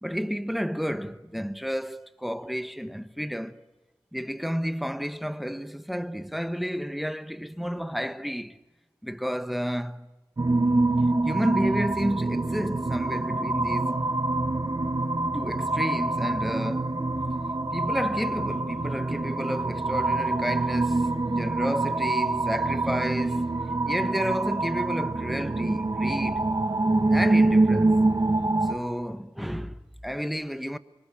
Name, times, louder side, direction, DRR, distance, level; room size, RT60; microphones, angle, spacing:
voice 1, 0.0-3.6 4.1-8.6 9.0-10.1 11.2-14.0 15.3-17.1 17.7-26.5 27.1-28.1 28.6-30.8, equal, ahead, 1.2 m, -31 dB
sound 1, 10.4-28.8, right 2 dB, 40° right, 2.1 m, -25 dB
26.0 x 24.0 x 9.1 m
cardioid pair, 55°, 9 cm